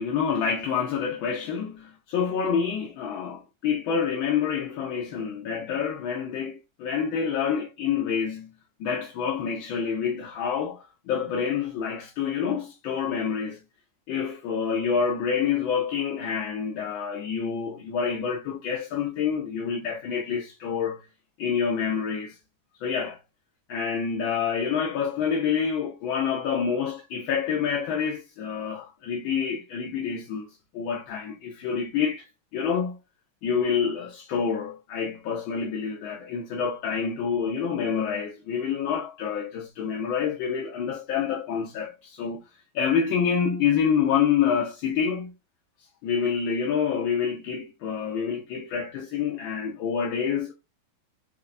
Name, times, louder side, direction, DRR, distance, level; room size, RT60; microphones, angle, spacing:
voice 1, 0.0-13.6 14.1-21.0 21.4-22.4 22.8-23.2 23.7-30.5 30.7-32.2 32.5-33.0 33.4-42.4 42.7-45.3 46.0-50.5, left 7 dB, 90° left, 1.5 m, -27 dB
4.5 x 2.5 x 2.4 m
omnidirectional pair, 2.1 m